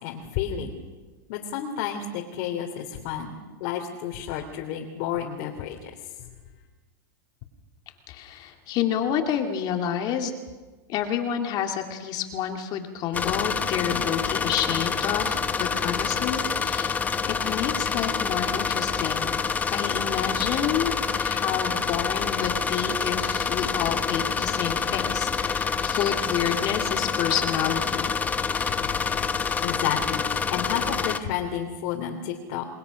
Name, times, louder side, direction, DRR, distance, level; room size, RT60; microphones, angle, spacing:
voice 1, 0.0-0.8 1.3-5.9 28.8-28.9 29.6-32.7, left 9 dB, 55° left, 1 dB, 3.2 m, -31 dB
voice 2, 8.1-10.4 10.9-17.0 17.2-19.3 19.7-28.1 28.5-28.7, left 9 dB, 35° left, 5 dB, 2.6 m, -29 dB
sound 1, 13.1-31.2, left 5 dB, 15° left, 1.1 m, -27 dB
30.0 x 21.0 x 6.4 m, 1.3 s
supercardioid pair, 145°, 11 cm